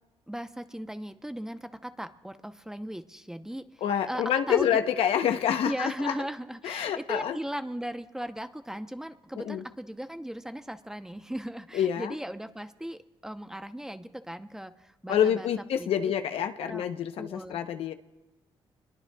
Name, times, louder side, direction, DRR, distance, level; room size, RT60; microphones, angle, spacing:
voice 1, 0.3-4.8 5.6-15.5 15.8-16.1 16.6-16.8 17.2-17.6, right 1 dB, 5° right, 9 dB, 0.7 m, -37 dB
voice 2, 3.8-6.1 6.6-7.4 9.4-9.6 11.7-12.1 15.1-17.9, left 9 dB, 85° left, 8 dB, 0.8 m, -27 dB
26.5 x 21.5 x 2.3 m, 1.1 s
cardioid pair, 100°, 10 cm